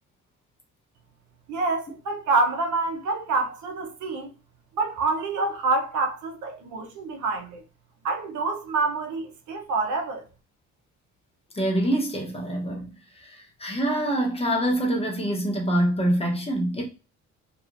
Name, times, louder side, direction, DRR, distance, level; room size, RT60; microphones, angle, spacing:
voice 1, 1.5-4.3 4.7-7.6 8.0-10.2, right 3 dB, 75° right, 0.8 m, -27 dB
voice 2, 11.5-12.9 13.2-16.9, right 1 dB, 20° left, 0.9 m, -25 dB
2.8 x 2.4 x 2.4 m
cardioid pair, 90°, 30 cm